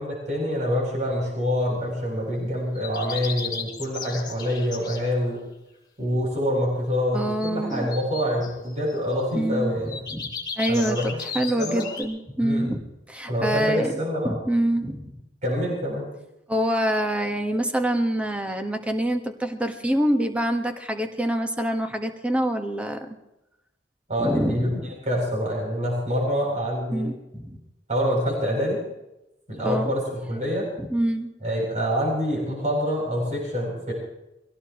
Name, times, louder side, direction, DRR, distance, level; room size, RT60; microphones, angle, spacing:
voice 1, 0.0-5.4 6.0-10.0 10.7-11.2 11.6-11.9 12.4-12.7 13.3-14.4 15.4-16.1 24.1-27.0 27.9-28.8 29.5-30.7 31.4-33.9, equal, 40° right, -2 dB, 7.8 m, -26 dB
sound 1, 2.8-5.1 7.2-9.0 9.9-12.0, left 5 dB, 25° left, 4.1 m, -35 dB
voice 2, 7.1-7.9 9.3-13.9 14.2-15.2 16.5-23.1 24.2-24.8 26.9-27.6 29.6-29.9 30.8-31.3, right 1 dB, 5° right, 5 dB, 1.5 m, -26 dB
24.0 x 17.5 x 3.1 m, 0.92 s
head